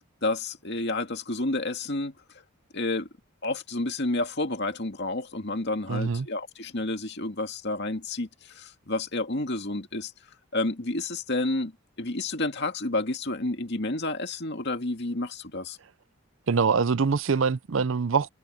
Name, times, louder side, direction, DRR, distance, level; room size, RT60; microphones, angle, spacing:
voice 1, 0.2-2.1 2.7-3.1 3.4-10.1 10.5-11.7 12.0-15.8, left 2 dB, 50° left, 2.2 m, -30 dB
voice 2, 5.9-6.3 16.5-18.3, right 5 dB, 60° right, 0.5 m, -24 dB
head